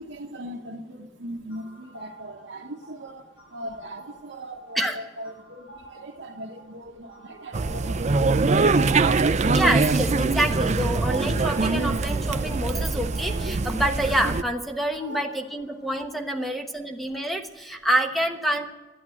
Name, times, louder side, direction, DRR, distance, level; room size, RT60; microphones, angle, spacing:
voice 1, 0.0-9.0 15.1-15.3 16.4-16.5, right 1 dB, 70° right, -3 dB, 1.1 m, -40 dB
sound 1, 1.5-16.3, right 2 dB, 70° left, 5.5 m, -51 dB
sound 2, 7.5-14.4, right 3 dB, 40° right, 0.5 m, -23 dB
voice 2, 9.4-18.7, right 1 dB, ahead, 4 dB, 1.1 m, -27 dB
12.5 x 8.4 x 8.9 m, 1.1 s
head